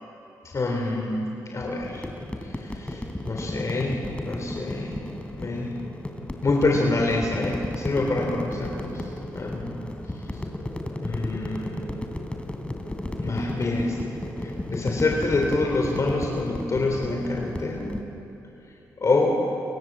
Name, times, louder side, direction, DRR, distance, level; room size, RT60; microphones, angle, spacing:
voice 1, 0.5-2.1 2.4-4.0 4.3-5.0 5.4-5.8 6.4-9.8 11.0-11.8 13.2-14.1 14.4-17.9 19.0-19.4, left 2 dB, 45° left, 1 dB, 3.8 m, -26 dB
sound 1, 1.8-18.0, left 1 dB, 15° left, 3.4 m, -34 dB
30.0 x 25.0 x 7.7 m, 3.0 s
cardioid pair, 60°, 7 cm